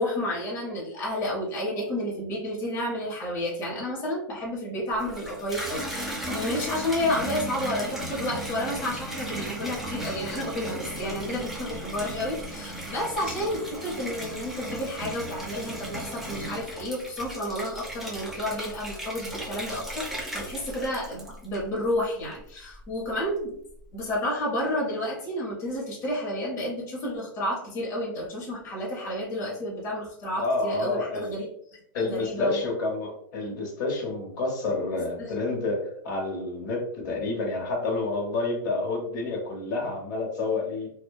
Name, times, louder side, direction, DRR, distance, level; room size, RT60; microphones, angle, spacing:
voice 1, 0.0-23.6 23.9-31.5 31.9-32.6 35.2-35.3, left 1 dB, 25° left, -4 dB, 0.7 m, -31 dB
Water tap faucet / Bathtub (filling or washing), 4.9-21.9 22.3-22.9, right 1 dB, ahead, 0.4 m, -36 dB
voice 2, 30.4-31.3 31.9-40.9, left 3 dB, 60° left, 0 dB, 0.8 m, -29 dB
2.6 x 2.1 x 2.2 m, 0.68 s
supercardioid pair, 150°, 12 cm